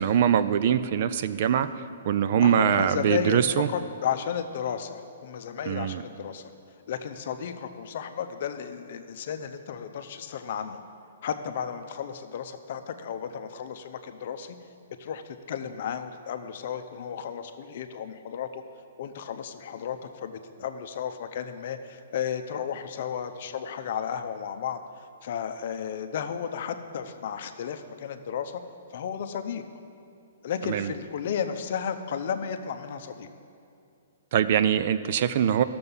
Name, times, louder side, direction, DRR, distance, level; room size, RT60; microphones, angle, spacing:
voice 1, 0.0-1.7 2.1-3.7 5.7-6.0 30.6-30.9 34.3-35.6, right 9 dB, 45° right, 13 dB, 0.4 m, -23 dB
voice 2, 2.4-6.5 6.9-10.8 11.2-14.6 15.0-18.6 19.0-24.8 25.2-28.6 28.9-29.6 30.4-33.3, left 8 dB, 50° left, 8 dB, 0.6 m, -33 dB
13.5 x 6.9 x 5.5 m, 2.4 s
hypercardioid pair, 165°, 0 cm